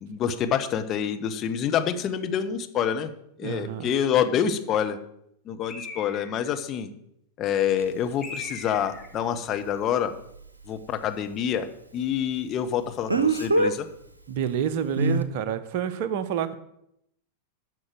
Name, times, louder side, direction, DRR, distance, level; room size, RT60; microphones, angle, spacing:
voice 1, 0.0-3.1 3.4-5.0 5.5-6.9 7.4-10.1 10.7-11.7 11.9-13.9, left 8 dB, 30° left, 7 dB, 1.1 m, -27 dB
voice 2, 3.4-3.9 14.3-16.5, right 9 dB, 50° right, 13 dB, 0.9 m, -28 dB
Bird, 5.7-6.5 8.2-9.1, left 4 dB, 15° left, 2.4 m, -39 dB
Speech, 7.8-7.9 13.1-13.7 15.0-15.2, right 2 dB, 80° right, 0.9 m, -22 dB
11.0 x 6.4 x 7.7 m, 0.75 s
figure-of-eight pair, 90°, 0 cm